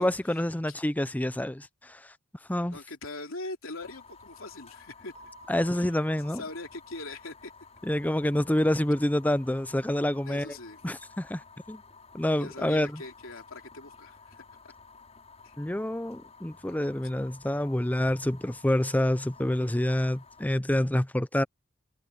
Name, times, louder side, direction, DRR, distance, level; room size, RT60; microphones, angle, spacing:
voice 1, 0.0-2.1 2.5-2.8 5.5-6.4 7.8-10.5 10.8-11.8 12.1-13.0 15.6-21.4, left 1 dB, 10° left, 0.6 m, -27 dB
voice 2, 2.7-5.1 5.8-5.9 6.3-7.5 10.3-10.8 12.4-14.7 15.4-15.5, left 2 dB, 70° left, 3.4 m, -41 dB
Fire, 3.8-20.5, left 4 dB, 30° left, 6.1 m, -53 dB
Keyboard (musical), 5.1-7.7, equal, 35° right, 3.3 m, -55 dB
head